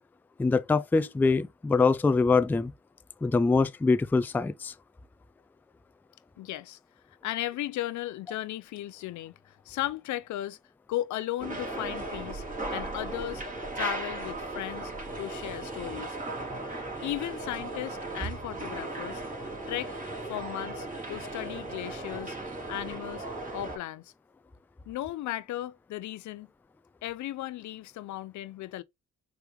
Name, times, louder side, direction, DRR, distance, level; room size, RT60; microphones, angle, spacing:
voice 1, 0.4-2.7 3.2-4.7, left 4 dB, 5° left, 0.3 m, -24 dB
voice 2, 6.4-6.8 7.2-10.6 10.9-12.4 12.7-13.4 13.7-14.9 15.2-16.2 17.0-19.2 19.7-20.0 20.3-22.4 22.7-23.3 23.5-24.1 24.9-26.5 27.0-28.8, left 14 dB, 75° left, 0.6 m, -36 dB
sound 1, 11.4-23.8, right 2 dB, 25° right, 2.9 m, -37 dB
4.9 x 3.3 x 3.1 m
cardioid pair, 90°, 30 cm